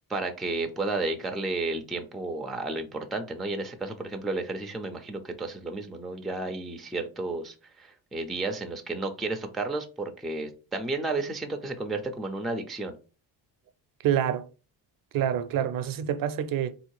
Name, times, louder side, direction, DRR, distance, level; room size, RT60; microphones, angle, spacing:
voice 1, 0.1-13.0, right 2 dB, ahead, 0.3 m, -32 dB
voice 2, 14.0-14.5 15.1-16.7, right 10 dB, 55° right, 0.5 m, -27 dB
3.8 x 2.7 x 4.5 m
cardioid pair, 145°, 41 cm